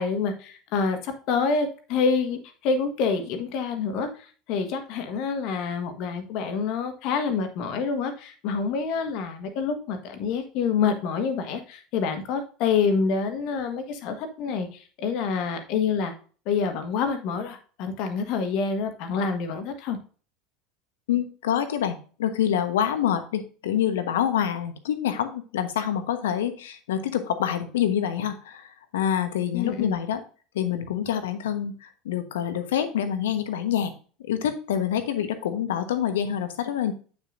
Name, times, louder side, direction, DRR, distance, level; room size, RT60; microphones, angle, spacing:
voice 1, 0.0-16.1 16.4-20.0 29.5-30.0, left 5 dB, 55° left, 7 dB, 1.6 m, -27 dB
voice 2, 21.1-30.2 30.5-33.9 34.3-36.9, left 9 dB, 70° left, 10 dB, 1.1 m, -26 dB
9.3 x 6.2 x 2.5 m, 0.39 s
figure-of-eight pair, 75°, 0 cm